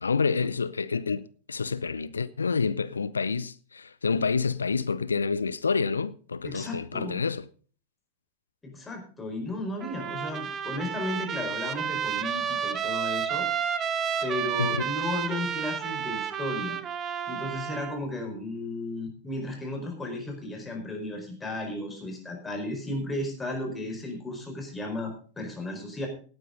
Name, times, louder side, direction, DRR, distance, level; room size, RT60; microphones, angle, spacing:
voice 1, 0.0-7.5 14.6-14.8, left 5 dB, 75° left, 0.5 m, -28 dB
voice 2, 6.4-7.2 8.6-13.5 14.2-16.8 17.3-26.1, left 2 dB, 15° left, 4.7 m, -34 dB
Trumpet, 9.8-18.0, right 8 dB, 25° right, 1.1 m, -31 dB
17.5 x 9.4 x 3.9 m
figure-of-eight pair, 90°, 0 cm